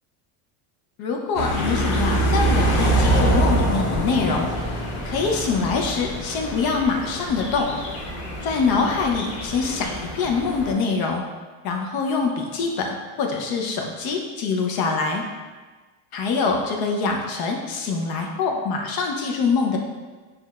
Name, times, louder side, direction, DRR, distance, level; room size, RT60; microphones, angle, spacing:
voice 1, 1.0-4.5 5.0-7.7 8.4-11.2 11.6-15.3 16.1-19.8, left 4 dB, 50° left, 2 dB, 0.6 m, -24 dB
sound 1, 1.3-10.7, right 1 dB, 75° left, 1.0 m, -25 dB
5.9 x 2.2 x 2.3 m, 1.3 s
supercardioid pair, 105°, 48 cm